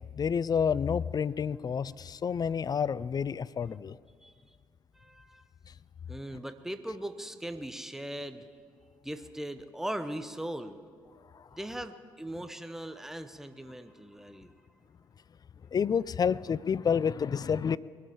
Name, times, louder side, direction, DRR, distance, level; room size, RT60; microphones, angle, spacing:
voice 1, 0.0-4.0 11.3-11.5 15.7-17.8, left 7 dB, 40° left, 20 dB, 0.4 m, -29 dB
voice 2, 4.9-5.4 6.1-8.5 9.0-10.8 11.5-14.5, right 1 dB, 5° right, 10 dB, 1.0 m, -39 dB
22.0 x 7.5 x 7.3 m, 2.2 s
hypercardioid pair, 45°, 11 cm